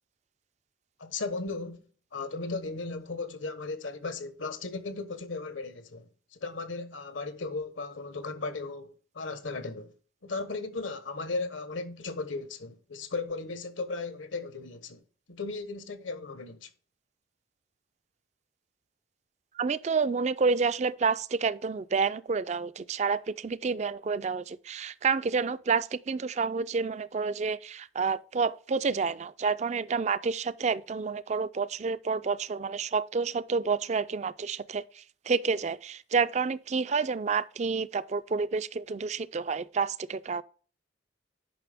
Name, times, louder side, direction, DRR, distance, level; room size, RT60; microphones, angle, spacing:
voice 1, 1.0-1.8 2.1-9.9 10.2-15.0 15.3-16.7, left 3 dB, 80° left, 1.1 m, -36 dB
voice 2, 19.5-40.4, right 5 dB, 35° right, 0.3 m, -29 dB
9.2 x 5.7 x 3.5 m
head